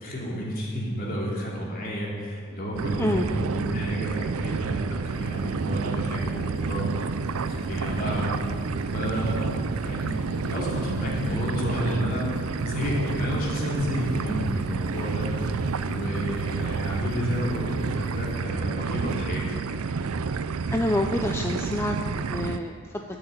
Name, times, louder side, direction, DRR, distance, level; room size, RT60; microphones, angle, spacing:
voice 1, 0.0-6.9 7.5-8.4 8.9-12.3 12.6-15.3 15.8-19.4, equal, 40° left, -4 dB, 2.9 m, -31 dB
sound 1, 2.8-22.6, right 4 dB, 80° right, 0.5 m, -30 dB
sound 2, 5.0-18.4, left 2 dB, 25° left, 1.4 m, -41 dB
voice 2, 20.7-23.2, left 1 dB, 10° left, 3 dB, 0.5 m, -27 dB
12.5 x 7.0 x 8.9 m, 2.4 s
head